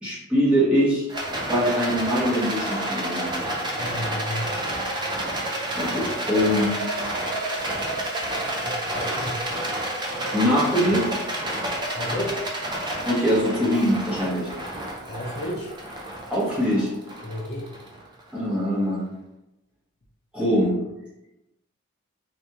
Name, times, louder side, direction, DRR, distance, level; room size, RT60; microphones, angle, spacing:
voice 1, 0.0-1.1 1.4-3.3 5.8-6.7 10.3-11.0 13.0-14.5 16.3-16.9 18.3-19.0 20.3-20.7, equal, 5° right, -8 dB, 1.0 m, -22 dB
Rattle, 1.1-18.5, right 1 dB, 20° right, 0.4 m, -29 dB
voice 2, 3.8-4.6 8.6-9.4 11.9-12.4 15.0-15.7 17.2-17.7, left 1 dB, 50° left, -2 dB, 0.5 m, -32 dB
3.4 x 2.6 x 2.9 m, 0.93 s
head